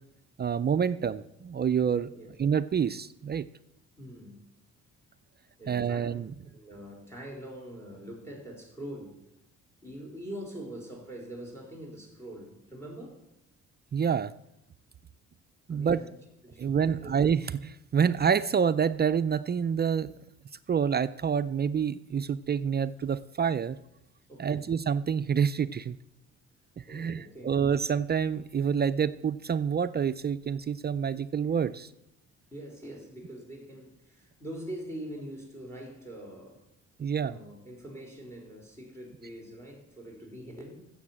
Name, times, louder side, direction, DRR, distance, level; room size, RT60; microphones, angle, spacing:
voice 1, 0.4-2.1 2.4-3.4 5.7-6.3 13.9-14.3 15.7-16.0 16.6-20.1 20.7-23.8 24.4-26.0 26.8-31.9 37.0-37.4, right 7 dB, 35° right, 0.4 m, -27 dB
voice 2, 4.0-4.4 5.6-6.1 6.5-9.2 9.8-13.3 15.7-16.1 16.4-17.1 24.3-24.7 26.9-27.5 32.5-36.6 37.3-40.9, right 1 dB, 10° left, 4.3 m, -43 dB
13.0 x 7.8 x 7.4 m
cardioid pair, 90°, 30 cm